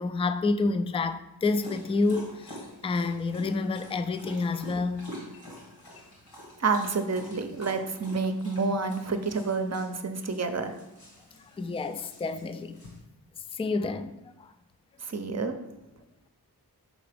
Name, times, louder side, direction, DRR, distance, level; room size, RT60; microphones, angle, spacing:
voice 1, 0.0-5.1 11.6-12.8 13.5-14.5, left 3 dB, 15° left, 0.3 m, -29 dB
Dog, 1.4-13.0, equal, 85° left, 1.7 m, -47 dB
voice 2, 6.6-10.7 15.0-15.6, right 4 dB, 40° right, 0.6 m, -29 dB
5.1 x 3.9 x 5.0 m
wide cardioid pair, 45°, 39 cm